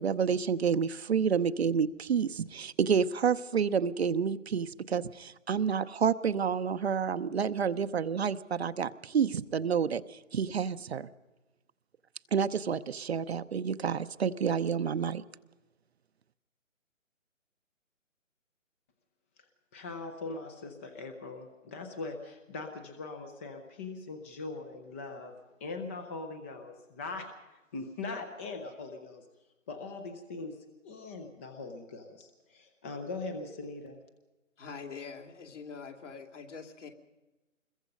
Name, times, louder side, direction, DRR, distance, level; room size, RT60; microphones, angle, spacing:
voice 1, 0.0-11.1 12.3-15.2, right 6 dB, 50° right, 12 dB, 0.9 m, -29 dB
voice 2, 19.7-25.3 25.6-29.3 29.7-34.0, left 3 dB, 10° left, 6 dB, 0.6 m, -41 dB
voice 3, 34.6-36.9, left 5 dB, 65° left, 3 dB, 3.0 m, -44 dB
26.0 x 21.5 x 5.3 m, 1.1 s
figure-of-eight pair, 145°, 40 cm